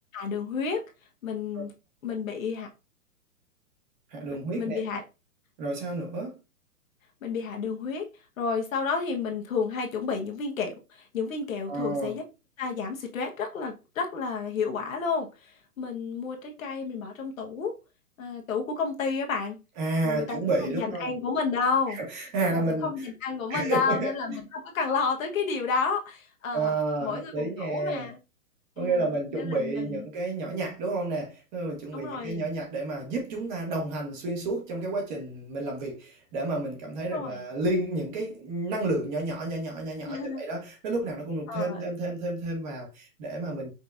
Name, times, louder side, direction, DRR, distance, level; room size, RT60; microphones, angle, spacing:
voice 1, 0.1-0.8 1.2-1.7 2.0-2.7 4.5-5.0 7.2-8.0 8.4-12.2 12.6-17.8 18.2-19.6 20.0-22.0 22.5-26.7 27.0-28.2 28.8-30.1 31.9-32.5 37.1-37.4 40.0-40.4 41.5-41.8, left 5 dB, 60° left, 1.2 m, -31 dB
voice 2, 4.1-4.8 5.6-6.4 11.7-12.1 19.8-21.1 21.9-22.9 23.5-24.4 26.5-28.1 28.8-43.7, right 2 dB, 30° right, 1.6 m, -30 dB
5.4 x 3.8 x 2.5 m
hypercardioid pair, 155°, 47 cm